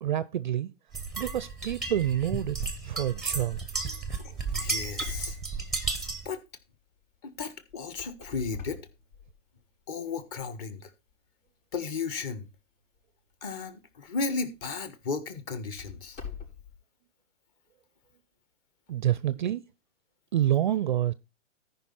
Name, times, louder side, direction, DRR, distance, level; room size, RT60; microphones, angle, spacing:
voice 1, 0.0-0.7 1.2-2.6 2.8-4.0 18.9-19.6 20.3-21.1, right 11 dB, 40° right, 0.4 m, -28 dB
sound 1, 0.9-6.3, right 4 dB, ahead, 0.7 m, -33 dB
voice 2, 4.2-5.4 6.2-6.4 7.2-8.8 9.9-10.9 11.7-12.5 13.4-16.2, left 4 dB, 30° left, 1.4 m, -34 dB
sound 2, 4.6-6.6 7.7-9.7 10.3-10.4 11.1-11.2 13.8-14.0 14.5-14.6 15.5-16.7, left 5 dB, 70° left, 5.5 m, -44 dB
13.5 x 5.4 x 4.2 m
hypercardioid pair, 140°, 38 cm